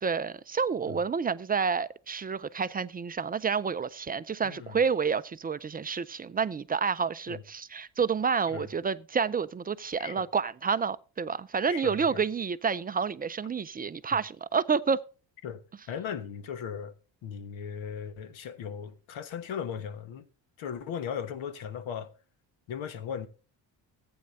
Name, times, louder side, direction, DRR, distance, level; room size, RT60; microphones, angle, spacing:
voice 1, 0.0-15.0, right 6 dB, 20° right, 0.4 m, -29 dB
voice 2, 4.4-4.8 7.3-7.4 8.5-8.7 10.0-10.3 11.7-12.2 15.4-15.6 15.9-16.9 17.2-20.3 20.6-22.1 22.7-23.3, left 7 dB, 75° left, 1.3 m, -37 dB
15.0 x 8.8 x 2.6 m
cardioid pair, 90°, 46 cm